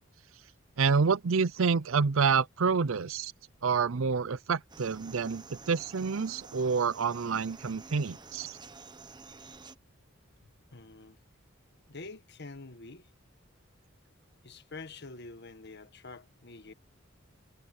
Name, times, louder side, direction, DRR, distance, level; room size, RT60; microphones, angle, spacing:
voice 1, 0.8-3.3 3.6-8.6, right 5 dB, 80° right, 0.6 m, -28 dB
sound 1, 4.7-9.8, right 4 dB, 20° right, 0.9 m, -50 dB
voice 2, 10.7-11.2 11.9-13.1 14.4-16.7, left 3 dB, 55° left, 1.6 m, -46 dB
head